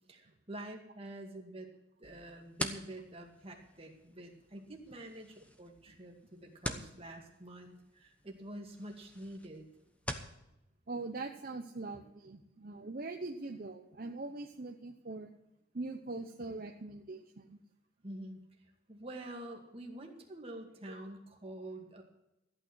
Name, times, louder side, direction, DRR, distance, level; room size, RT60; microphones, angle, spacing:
voice 1, 0.1-1.7 2.0-9.7 18.0-22.0, right 1 dB, 30° right, 1 dB, 2.1 m, -47 dB
sound 1, 2.0-10.4, left 1 dB, 5° left, 0.9 m, -45 dB
voice 2, 10.9-15.3 15.7-17.6, right 3 dB, 50° right, 4 dB, 0.8 m, -42 dB
14.0 x 8.9 x 6.2 m, 0.90 s
head